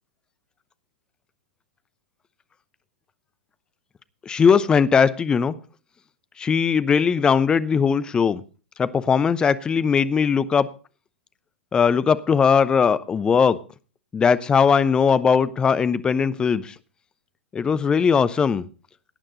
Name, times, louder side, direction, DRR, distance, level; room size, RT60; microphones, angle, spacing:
voice 1, 4.3-5.5 6.4-8.4 8.8-10.7 11.7-13.6 14.1-16.7 17.5-18.6, left 6 dB, 15° left, 16 dB, 0.7 m, -19 dB
17.5 x 9.0 x 4.0 m, 0.35 s
figure-of-eight pair, 105°, 6 cm